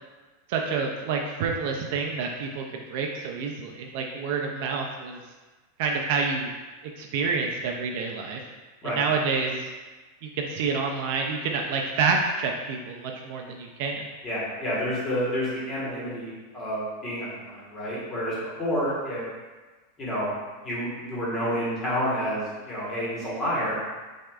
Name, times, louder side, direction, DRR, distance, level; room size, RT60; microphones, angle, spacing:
voice 1, 0.5-2.6 2.9-5.2 5.8-6.5 7.0-8.4 8.8-9.7 10.2-14.0, right 5 dB, 45° right, 1 dB, 0.3 m, -28 dB
voice 2, 14.2-16.3 16.5-19.2 20.0-20.3 20.6-23.7, equal, 15° left, -8 dB, 1.1 m, -29 dB
5.9 x 2.4 x 2.3 m, 1.3 s
supercardioid pair, 175°, 0 cm